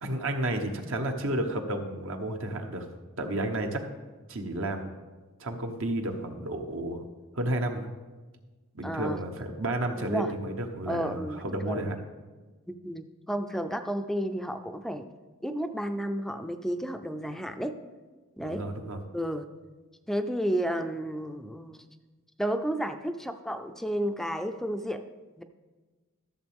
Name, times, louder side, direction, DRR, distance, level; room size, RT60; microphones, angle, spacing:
voice 1, 0.0-2.8 3.2-3.8 4.3-4.9 5.4-7.0 7.3-7.9 8.7-11.9 18.4-19.0, right 1 dB, 65° right, 4 dB, 1.1 m, -31 dB
voice 2, 8.8-9.2 10.0-10.3 10.9-11.9 12.7-15.1 15.4-17.8 18.4-18.7 19.1-19.4 20.1-21.8 22.4-25.0 25.4-25.5, equal, ahead, 7 dB, 0.4 m, -32 dB
14.0 x 7.1 x 3.5 m, 1.3 s
head